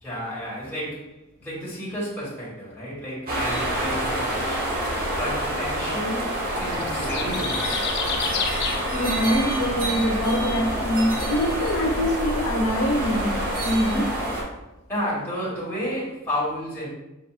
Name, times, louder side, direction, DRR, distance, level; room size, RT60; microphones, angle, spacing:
voice 1, 0.0-4.7 5.2-7.8 14.9-16.9, equal, 10° left, -9 dB, 1.4 m, -31 dB
sound 1, 3.3-14.4, right 1 dB, 45° right, 0.8 m, -27 dB
sound 2, 6.6-12.1, left 5 dB, 50° left, 0.5 m, -33 dB
voice 2, 8.9-14.1, equal, 80° left, -1 dB, 1.1 m, -24 dB
6.2 x 2.7 x 2.5 m, 0.97 s
head